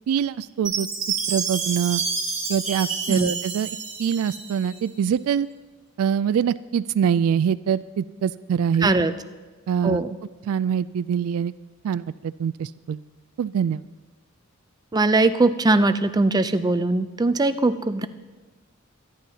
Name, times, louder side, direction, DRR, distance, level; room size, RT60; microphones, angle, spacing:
voice 1, 0.1-0.9 1.3-2.0 2.5-5.5 6.0-8.9 9.7-10.0 10.4-11.5 11.8-13.0 13.4-13.8, right 8 dB, 90° right, 16 dB, 0.3 m, -24 dB
Chime, 0.6-4.8, right 5 dB, 35° right, 2.6 m, -29 dB
voice 2, 8.8-9.1 9.8-10.1 14.9-18.1, right 2 dB, 20° right, 11 dB, 0.4 m, -20 dB
25.0 x 10.5 x 2.8 m, 1.3 s
head